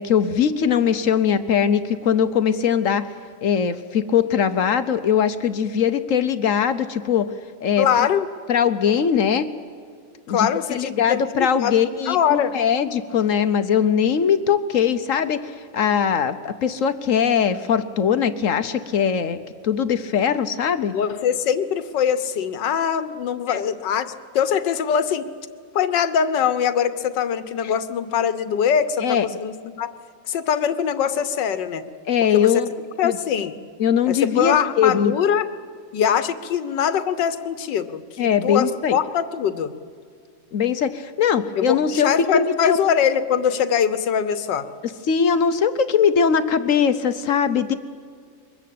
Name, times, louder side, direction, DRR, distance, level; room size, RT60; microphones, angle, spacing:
voice 1, 0.0-3.1 3.4-7.3 7.6-8.1 8.5-9.5 10.3-19.4 19.6-20.9 23.5-23.6 27.6-27.7 29.0-29.3 32.1-32.7 33.0-33.2 33.8-35.1 38.2-39.0 40.5-42.8 45.0-47.7, left 7 dB, 55° left, 11 dB, 0.9 m, -21 dB
voice 2, 7.8-8.3 10.3-12.5 20.9-24.1 24.4-25.3 25.8-29.9 30.3-31.8 32.3-32.5 33.0-33.5 34.1-35.5 35.9-39.7 41.6-44.7, left 8 dB, 75° left, 12 dB, 1.6 m, -22 dB
23.0 x 21.0 x 8.5 m, 2.1 s
omnidirectional pair, 2.0 m